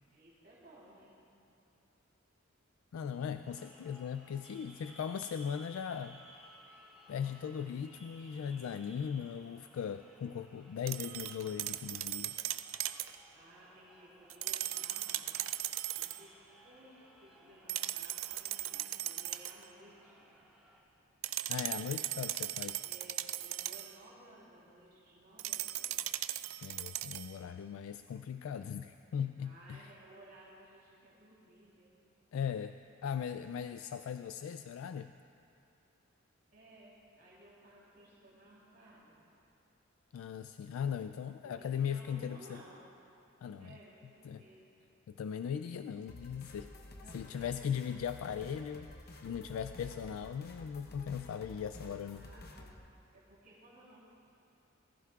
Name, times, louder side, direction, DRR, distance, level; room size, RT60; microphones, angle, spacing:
voice 1, 0.1-1.1 13.3-15.4 16.0-16.3 16.6-20.2 22.8-26.0 29.4-31.9 36.5-39.1 41.6-42.8 43.6-44.7 47.0-47.5 47.8-47.9 52.1-52.8 53.1-54.0, right 1 dB, 50° right, -7 dB, 3.4 m, -58 dB
voice 2, 2.9-6.2 7.1-12.3 21.5-22.8 26.6-29.9 32.3-32.8 33.0-35.1 40.1-42.6 43.4-43.7 44.2-44.4 45.1-46.7 47.1-48.9 49.2-52.2, left 7 dB, 85° left, 10 dB, 0.3 m, -38 dB
sound 1, 3.4-20.8, equal, 5° right, 2.5 m, -60 dB
sound 2, 10.9-13.2 14.3-16.2 17.7-19.6 21.2-24.0 25.4-27.4, right 14 dB, 80° right, 0.4 m, -38 dB
sound 3, 46.1-52.7, left 1 dB, 50° left, 0.9 m, -51 dB
20.5 x 14.5 x 2.4 m, 2.7 s
head